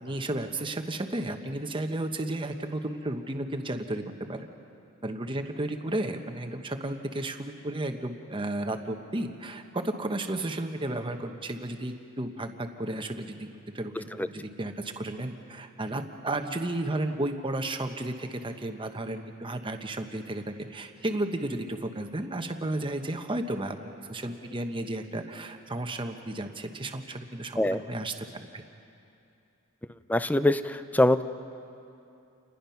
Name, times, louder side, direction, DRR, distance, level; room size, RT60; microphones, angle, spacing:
voice 1, 0.0-4.5 5.0-13.5 13.7-28.6, right 1 dB, 25° right, 6 dB, 1.1 m, -33 dB
voice 2, 30.1-31.2, left 1 dB, 10° left, 12 dB, 0.5 m, -23 dB
29.0 x 20.0 x 5.8 m, 2.7 s
head